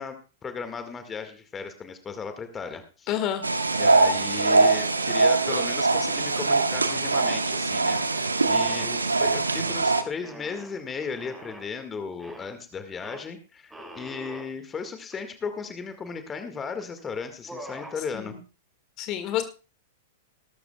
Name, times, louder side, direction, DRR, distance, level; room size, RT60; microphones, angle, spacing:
voice 1, 0.0-3.1 3.8-18.4, left 5 dB, 20° left, 8 dB, 1.8 m, -36 dB
voice 2, 3.1-3.5 18.1-18.4 19.0-19.4, left 11 dB, 35° left, 8 dB, 1.8 m, -28 dB
sound 1, 3.4-10.0, right 3 dB, 80° right, 1.3 m, -22 dB
sound 2, 8.5-9.8 10.2-11.7 12.2-12.5 13.0-13.2 13.7-14.5 15.1-15.2 15.4-16.2 16.8-17.0 17.3-18.0, right 1 dB, 5° right, 5.1 m, -44 dB
19.5 x 13.0 x 2.3 m, 0.33 s
figure-of-eight pair, 100°, 0 cm